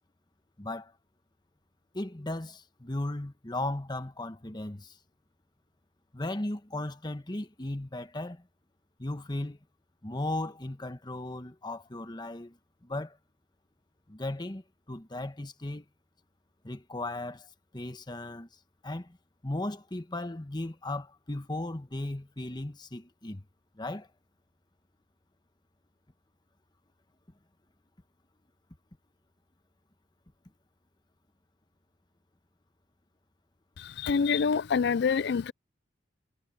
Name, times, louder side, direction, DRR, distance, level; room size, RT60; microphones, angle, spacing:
voice 1, 0.6-0.9 1.9-5.0 6.1-8.5 9.0-9.6 10.0-13.2 14.1-14.6 14.9-15.8 16.6-18.5 18.8-19.2 19.4-23.4 23.8-24.1, left 2 dB, 25° left, 1.1 m, -36 dB
voice 2, 33.8-35.5, left 5 dB, 65° left, 0.4 m, -26 dB
head